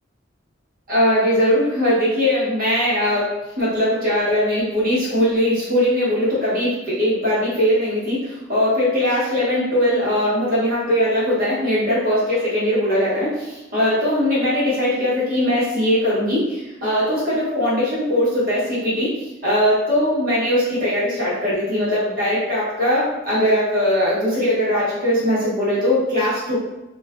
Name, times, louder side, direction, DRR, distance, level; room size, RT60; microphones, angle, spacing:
voice 1, 0.9-3.3 3.6-19.1 19.4-26.6, left 1 dB, 45° right, -9 dB, 1.0 m, -20 dB
2.4 x 2.3 x 2.2 m, 0.98 s
head